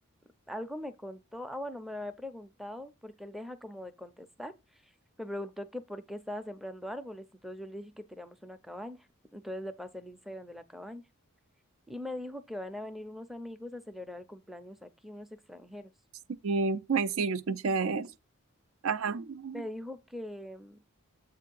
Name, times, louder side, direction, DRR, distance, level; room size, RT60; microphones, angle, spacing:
voice 1, 0.5-4.9 5.2-9.1 9.3-11.0 11.9-15.9 19.5-20.8, left 1 dB, ahead, 0.4 m, -41 dB
voice 2, 16.4-18.1 18.8-19.6, right 4 dB, 65° right, 0.4 m, -30 dB
7.5 x 2.8 x 5.2 m
head